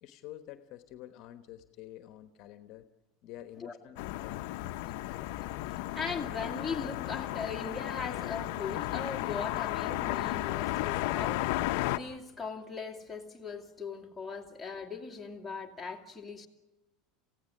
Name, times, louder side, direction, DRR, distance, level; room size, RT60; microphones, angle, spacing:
voice 1, 0.0-2.9 3.2-5.2, left 13 dB, 45° left, 1.2 m, -49 dB
sound 1, 4.0-12.0, left 17 dB, 60° left, 0.8 m, -34 dB
voice 2, 5.9-16.5, left 5 dB, ahead, 2.4 m, -39 dB
28.5 x 16.0 x 10.0 m
supercardioid pair, 160°, 0 cm